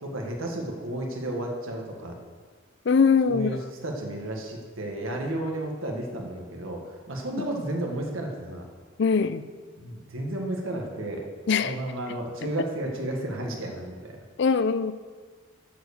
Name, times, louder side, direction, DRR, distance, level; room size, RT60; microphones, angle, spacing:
voice 1, 0.0-2.2 3.3-8.6 9.8-11.2 11.6-14.2, right 1 dB, 80° right, 1 dB, 1.6 m, -32 dB
voice 2, 2.9-3.5 9.0-9.5 11.5-11.8 12.4-12.5 14.4-14.9, left 5 dB, 55° left, 14 dB, 0.4 m, -22 dB
7.8 x 7.0 x 6.6 m, 1.5 s
head